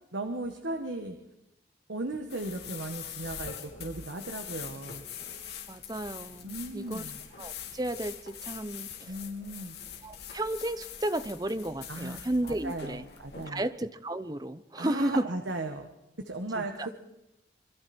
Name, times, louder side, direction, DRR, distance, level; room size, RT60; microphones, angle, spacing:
voice 1, 0.1-1.2 1.9-5.0 6.4-7.2 9.0-9.8 11.9-13.6 14.8-15.9 16.2-16.9, right 2 dB, 85° right, 5 dB, 1.6 m, -36 dB
sound 1, 2.3-13.5, left 8 dB, 65° left, 3.0 m, -43 dB
voice 2, 5.7-7.0 7.4-9.2 10.0-13.0 13.5-15.3 16.5-16.9, right 1 dB, 20° right, 14 dB, 0.7 m, -33 dB
27.0 x 22.5 x 4.5 m, 0.93 s
head